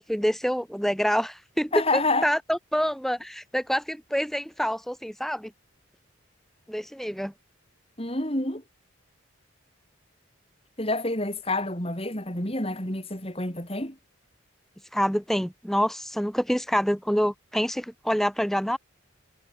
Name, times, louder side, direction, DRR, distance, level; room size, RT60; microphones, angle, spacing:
voice 1, 0.0-5.5 6.7-7.3 14.9-18.8, equal, ahead, 4.4 m, -27 dB
voice 2, 1.7-2.3 8.0-8.6 10.8-14.0, left 2 dB, 30° left, 5.0 m, -28 dB
head